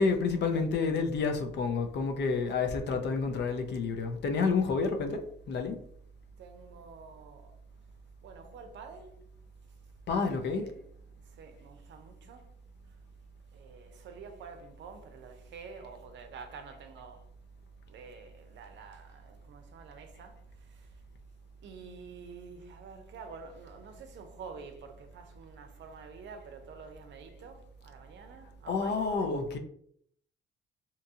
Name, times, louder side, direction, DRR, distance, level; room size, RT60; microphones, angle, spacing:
voice 1, 0.0-5.2 5.5-5.8 10.1-10.6 28.7-29.6, left 4 dB, 60° left, 0.5 m, -29 dB
voice 2, 6.4-7.5 8.2-9.1 10.4-10.9 11.2-12.5 13.5-17.2 17.9-21.0 21.6-29.3, right 5 dB, 65° right, 0.5 m, -49 dB
2.8 x 2.3 x 2.7 m
cardioid pair, 90°, 20 cm